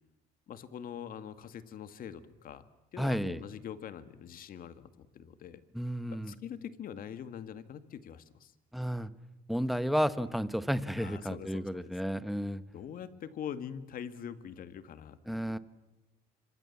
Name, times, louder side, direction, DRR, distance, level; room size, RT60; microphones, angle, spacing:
voice 1, 0.5-2.7 2.9-5.6 6.3-8.5 11.0-12.0 12.7-15.6, left 8 dB, 60° left, 11 dB, 2.0 m, -44 dB
voice 2, 3.0-3.4 5.7-6.3 8.7-9.1 9.5-12.6 15.3-15.6, equal, ahead, 13 dB, 1.3 m, -32 dB
26.0 x 25.5 x 7.3 m, 1.0 s
cardioid pair, 110°, 17 cm